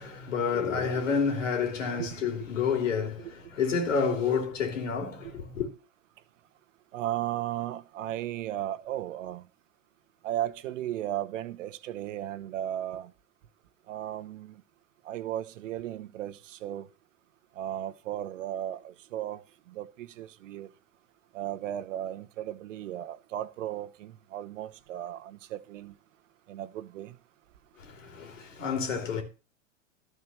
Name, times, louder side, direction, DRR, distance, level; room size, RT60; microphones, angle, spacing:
voice 1, 0.0-5.7 27.8-29.2, left 6 dB, 80° left, 3.3 m, -29 dB
voice 2, 6.9-9.4 10.2-13.1 13.9-14.5 15.1-16.9 17.6-19.4 19.8-20.7 21.3-25.9 26.5-27.1, right 12 dB, 75° right, 1.0 m, -35 dB
12.5 x 4.7 x 6.9 m
hypercardioid pair, 110°, 38 cm